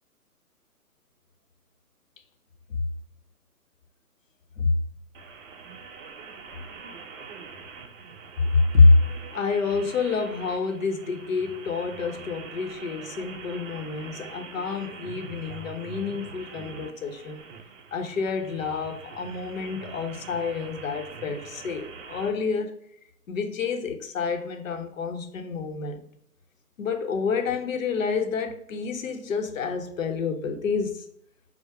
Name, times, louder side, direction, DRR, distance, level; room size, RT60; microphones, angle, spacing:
sound 1, 5.1-22.3, right 5 dB, 55° right, 0.6 m, -43 dB
voice 1, 8.5-9.0 9.3-17.4 17.9-22.7 23.3-26.1 26.8-31.1, left 4 dB, 55° left, 0.7 m, -27 dB
4.6 x 2.1 x 4.6 m
hypercardioid pair, 145°, 46 cm